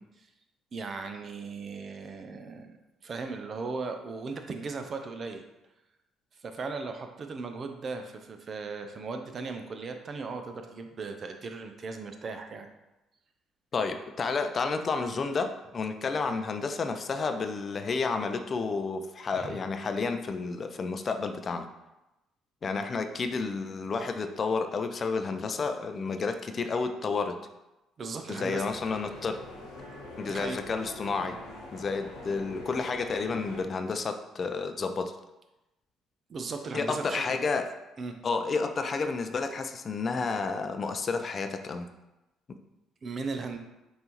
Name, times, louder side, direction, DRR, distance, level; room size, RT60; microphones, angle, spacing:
voice 1, 0.7-2.8 3.0-5.4 6.4-12.7 19.3-19.6 28.0-28.7 30.2-30.6 36.3-37.4 38.0-38.2 43.0-43.6, right 4 dB, 45° right, 6 dB, 0.5 m, -37 dB
voice 2, 13.7-21.7 22.6-27.4 28.3-29.4 30.2-31.4 31.7-35.2 36.7-37.7 38.2-41.9, left 4 dB, 45° left, 7 dB, 0.4 m, -31 dB
sound 1, 28.6-33.6, left 1 dB, 80° left, 1.2 m, -44 dB
5.4 x 2.7 x 2.9 m, 0.97 s
hypercardioid pair, 55°, 0 cm